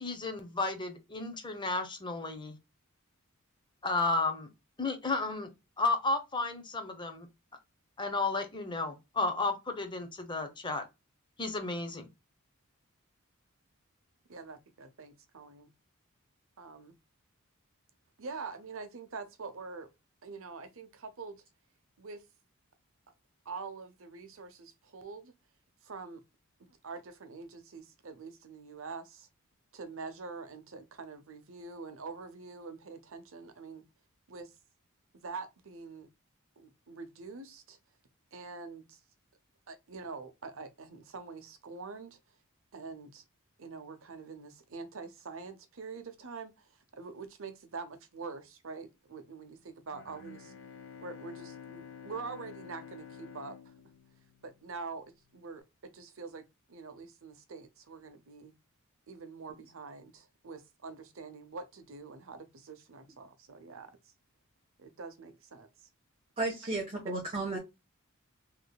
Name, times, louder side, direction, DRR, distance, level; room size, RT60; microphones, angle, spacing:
voice 1, 0.0-2.6 3.8-4.5 4.8-5.5 5.8-7.3 8.0-10.8 11.4-12.1, left 3 dB, 20° left, 0.9 m, -32 dB
voice 2, 14.3-15.7 16.6-17.0 18.2-19.9 20.2-21.4 22.0-22.2 23.4-25.3 25.8-26.2 26.6-29.3 29.7-33.8 34.3-34.5 35.2-36.1 36.6-37.8 38.3-39.0 39.7-42.2 42.7-43.2 43.6-50.5 51.0-53.7 54.4-55.0 55.3-58.5 59.1-64.0 64.8-65.9 67.1-67.2, right 4 dB, 65° right, 0.8 m, -45 dB
Bowed string instrument, 49.9-54.8, left 7 dB, 60° left, 0.8 m, -49 dB
voice 3, 66.4-67.6, right 2 dB, 25° right, 1.2 m, -33 dB
3.7 x 3.3 x 2.2 m
head